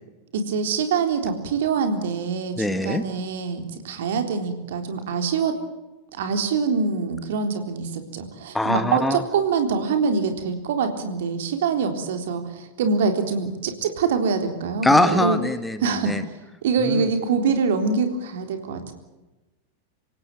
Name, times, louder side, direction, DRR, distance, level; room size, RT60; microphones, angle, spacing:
voice 1, 0.3-5.5 6.1-15.4 15.8-16.2 16.6-18.9, right 5 dB, 55° right, 6 dB, 3.7 m, -24 dB
voice 2, 2.6-3.0 8.5-9.2 14.8-16.2 16.8-17.0, left 1 dB, 5° left, 11 dB, 1.4 m, -22 dB
27.0 x 16.5 x 9.0 m, 1.1 s
figure-of-eight pair, 90°, 0 cm